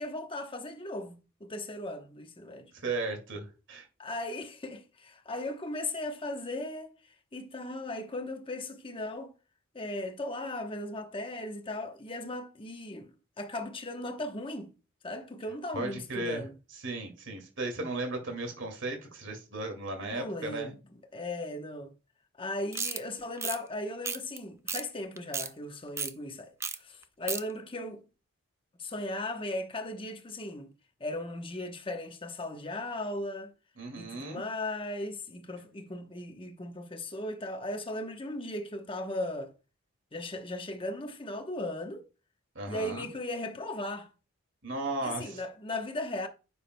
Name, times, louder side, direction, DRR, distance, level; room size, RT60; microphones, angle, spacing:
voice 1, 0.0-2.7 4.0-6.9 7.3-9.3 9.7-13.1 13.4-14.7 15.0-16.6 20.0-20.8 21.1-21.9 22.4-28.0 28.8-30.7 31.0-33.5 34.0-39.5 40.1-42.1 42.7-44.1 45.0-46.3, left 1 dB, 25° left, 1.0 m, -37 dB
voice 2, 2.7-3.9 15.7-16.4 16.8-20.7 33.8-34.4 42.6-43.1 44.6-45.4, right 2 dB, 60° right, 2.2 m, -35 dB
sound 1, 22.7-23.0 23.4-23.6 24.0-24.4 24.7-24.8 25.2-25.5 26.0-26.1 26.6-26.8 27.0-27.4, right 5 dB, 15° right, 0.4 m, -33 dB
9.7 x 7.1 x 2.2 m
head